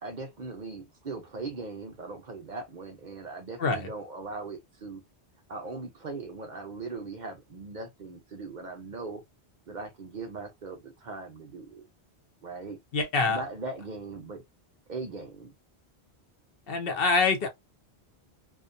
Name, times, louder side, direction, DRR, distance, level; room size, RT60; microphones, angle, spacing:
voice 1, 0.0-5.0 5.5-9.2 9.7-11.9 12.4-12.8 13.2-14.4 14.9-15.5, right 3 dB, 50° right, 0.7 m, -39 dB
voice 2, 3.6-3.9 12.9-13.4 16.7-17.5, left 4 dB, 65° left, 0.8 m, -25 dB
2.4 x 2.2 x 2.5 m
omnidirectional pair, 1.1 m